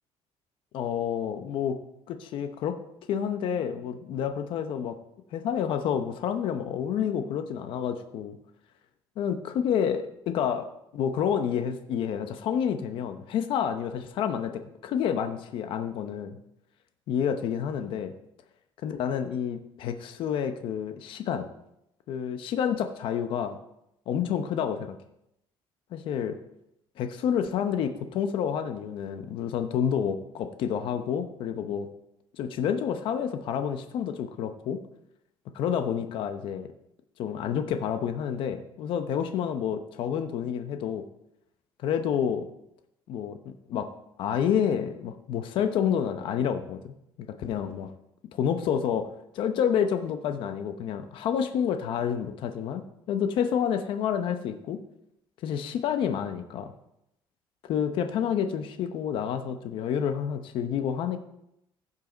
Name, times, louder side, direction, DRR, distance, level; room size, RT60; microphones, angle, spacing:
voice 1, 0.7-1.8 2.1-2.8 3.1-5.0 5.3-8.4 9.2-10.7 10.9-16.4 17.1-18.1 18.8-21.5 22.1-23.6 24.1-24.9 25.9-26.4 27.0-31.9 32.4-34.8 35.5-36.7 37.2-41.0 41.8-42.5 43.1-43.9 44.2-46.9 47.4-47.9 48.3-49.1 49.3-54.8 55.4-56.7 57.7-61.2, left 8 dB, 60° left, 7 dB, 0.8 m, -29 dB
15.5 x 5.6 x 4.0 m, 0.81 s
cardioid pair, 155°, 10 cm